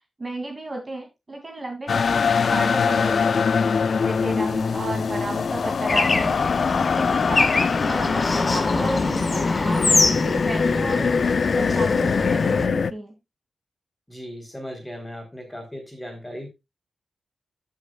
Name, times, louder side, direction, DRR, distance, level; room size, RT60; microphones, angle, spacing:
voice 1, 0.2-3.5 4.0-6.4 7.0-11.2 11.5-13.1, right 2 dB, 30° right, 2 dB, 2.4 m, -33 dB
sound 1, 1.9-12.9, left 5 dB, 60° left, 0.5 m, -23 dB
Bird / Traffic noise roadway noise, 5.9-12.7, left 3 dB, 35° left, 1.5 m, -24 dB
voice 2, 14.1-16.5, equal, 10° left, 3 dB, 3.7 m, -37 dB
13.5 x 6.5 x 2.3 m, 0.24 s
wide cardioid pair, 95°, 0 cm